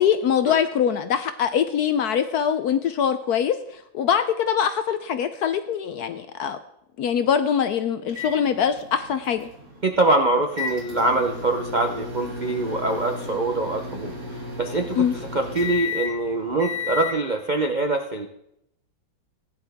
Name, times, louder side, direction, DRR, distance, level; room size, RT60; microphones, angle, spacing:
voice 1, 0.0-6.6 7.0-9.5 14.9-15.1, left 8 dB, 70° left, 10 dB, 0.9 m, -23 dB
sound 1, 8.1-17.2, left 4 dB, 40° right, 2.6 m, -34 dB
voice 2, 9.8-14.1 14.6-18.3, right 2 dB, 60° right, 4 dB, 0.4 m, -24 dB
16.0 x 10.5 x 3.5 m, 0.78 s
omnidirectional pair, 2.1 m